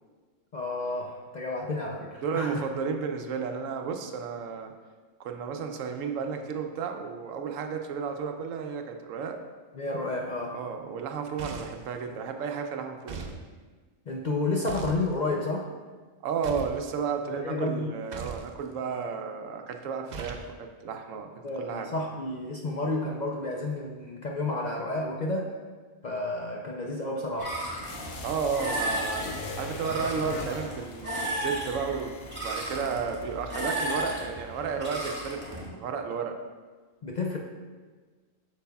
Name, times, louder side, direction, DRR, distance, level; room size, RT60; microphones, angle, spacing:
voice 1, 0.5-2.6 9.7-10.6 14.1-15.7 17.3-17.9 21.4-25.5 26.0-27.5 37.0-37.4, left 2 dB, 50° left, -1 dB, 0.5 m, -31 dB
voice 2, 2.2-4.7 5.2-9.4 10.5-13.3 16.2-21.3 21.6-21.9 28.2-29.3 29.6-36.4, right 6 dB, 85° right, 5 dB, 1.0 m, -33 dB
sound 1, 11.4-11.9 13.1-13.4 14.7-15.0 16.4-16.8 18.1-18.5 20.1-20.5, right 5 dB, 55° right, 0.5 m, -38 dB
sound 2, 27.4-35.7, right 1 dB, 10° right, 1.7 m, -34 dB
sound 3, 27.8-32.9 33.2-33.3, left 3 dB, 75° left, 1.0 m, -41 dB
8.2 x 6.4 x 2.3 m, 1.4 s
omnidirectional pair, 1.3 m